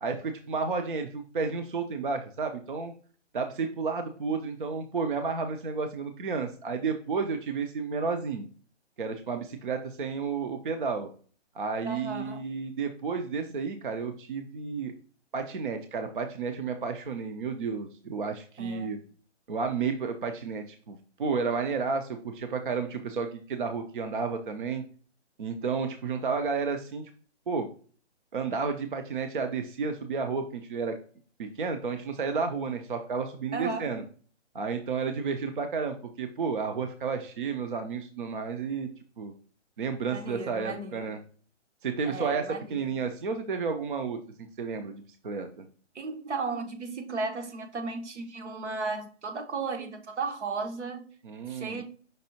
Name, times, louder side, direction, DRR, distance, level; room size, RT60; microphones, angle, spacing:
voice 1, 0.0-2.9 3.3-8.5 9.0-11.1 11.5-14.9 15.3-19.0 19.5-24.8 25.4-27.0 27.5-27.7 28.3-31.0 31.4-34.0 34.5-38.9 39.2-39.3 39.8-41.2 41.8-44.2 44.6-45.7 51.2-51.8, right 5 dB, 45° right, 7 dB, 0.5 m, -31 dB
voice 2, 11.8-12.4 18.6-18.9 33.5-33.9 40.1-41.1 42.0-42.9 45.9-51.1 51.5-51.8, right 4 dB, 70° right, 5 dB, 1.0 m, -35 dB
5.3 x 3.6 x 2.7 m, 0.43 s
hypercardioid pair, 165°, 36 cm